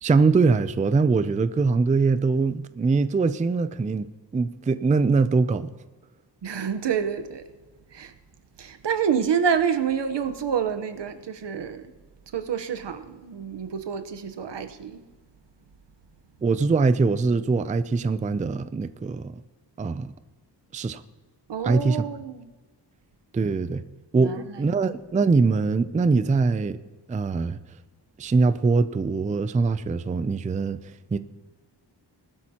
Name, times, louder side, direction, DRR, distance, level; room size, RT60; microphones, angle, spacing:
voice 1, 0.0-4.1 4.3-5.7 16.4-19.4 19.8-20.1 20.7-21.0 21.6-22.0 23.3-23.8 24.1-26.8 27.1-27.6 28.2-30.8 31.1-31.2, right 4 dB, 20° right, 0.3 m, -22 dB
voice 2, 6.4-7.4 7.9-8.1 8.6-11.9 12.3-15.0 21.5-22.5 24.1-24.6, right 7 dB, 80° right, 1.0 m, -28 dB
20.0 x 12.5 x 2.9 m
wide cardioid pair, 170°, 42 cm